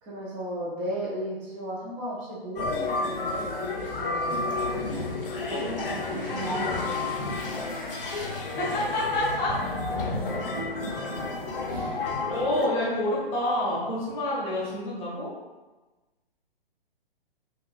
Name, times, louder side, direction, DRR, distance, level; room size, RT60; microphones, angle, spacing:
voice 1, 0.0-5.0 5.4-7.1 8.7-8.8 10.0-10.5 11.7-12.1 12.8-12.9, equal, 20° right, -5 dB, 0.7 m, -36 dB
sound 1, 2.6-12.7, left 3 dB, 65° left, 0.7 m, -31 dB
sound 2, 4.9-14.2, right 2 dB, 45° right, 1.2 m, -44 dB
voice 2, 8.6-9.8 12.3-15.3, left 1 dB, 20° left, -6 dB, 1.0 m, -28 dB
3.8 x 2.4 x 2.5 m, 1.1 s
figure-of-eight pair, 130°, 30 cm